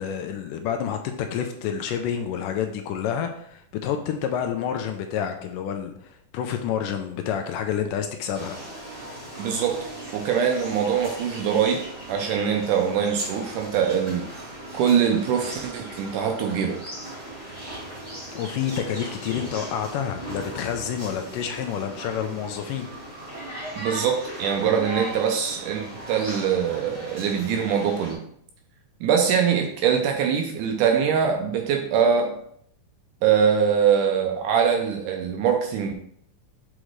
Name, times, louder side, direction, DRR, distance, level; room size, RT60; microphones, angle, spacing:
voice 1, 0.0-8.6 18.3-22.9, left 8 dB, 80° left, 6 dB, 2.0 m, -29 dB
sound 1, 8.3-28.1, right 1 dB, 15° right, 2.4 m, -38 dB
voice 2, 9.4-9.8 10.1-14.3 14.7-16.8 23.8-28.2 29.0-32.3 33.2-35.9, right 7 dB, 80° right, 3 dB, 1.9 m, -23 dB
6.4 x 4.9 x 3.1 m, 0.66 s
omnidirectional pair, 4.0 m